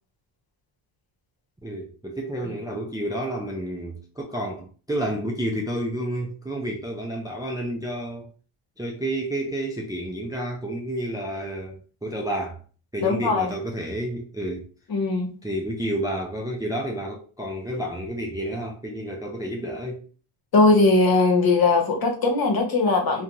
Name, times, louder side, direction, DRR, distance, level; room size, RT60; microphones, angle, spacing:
voice 1, 1.6-8.3 8.8-12.6 12.9-14.7 15.4-20.1, right 1 dB, 10° right, 0.4 m, -30 dB
voice 2, 13.0-13.5 14.9-15.3 20.5-23.2, left 3 dB, 50° left, 1.0 m, -19 dB
2.4 x 2.3 x 2.9 m
cardioid pair, 80°, 49 cm